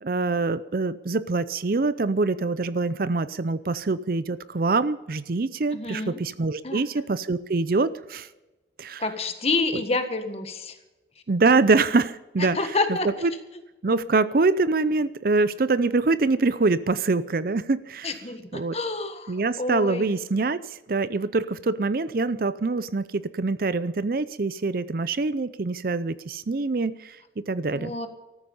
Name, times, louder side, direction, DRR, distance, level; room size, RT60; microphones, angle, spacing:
voice 1, 0.0-8.3 8.8-9.0 11.3-12.6 13.2-13.3 13.8-18.1 18.5-18.8 19.3-27.9, right 3 dB, 50° right, 15 dB, 0.5 m, -24 dB
voice 2, 5.7-6.2 6.6-6.8 9.0-10.8 12.4-13.1 18.0-20.1 27.7-28.1, left 3 dB, 35° left, 7 dB, 1.5 m, -28 dB
14.0 x 14.0 x 5.5 m, 1.0 s
head